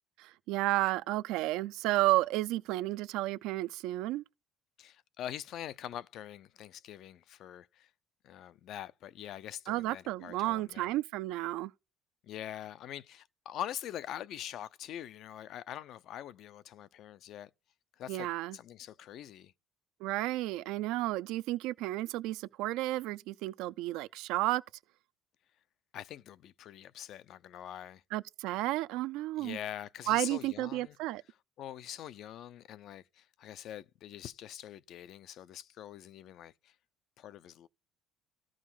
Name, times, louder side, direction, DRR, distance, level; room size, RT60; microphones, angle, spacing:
voice 1, 0.2-4.2 9.7-11.7 18.1-18.6 20.0-24.6 28.1-29.6 30.1-31.2, right 17 dB, 75° right, 0.5 m, -32 dB
voice 2, 4.8-7.9 8.2-10.9 12.2-17.5 18.0-19.5 25.9-28.0 29.4-31.0 31.6-36.7 37.2-37.7, left 11 dB, 50° left, 0.5 m, -44 dB
13.5 x 4.9 x 5.6 m
cardioid pair, 150°, 0 cm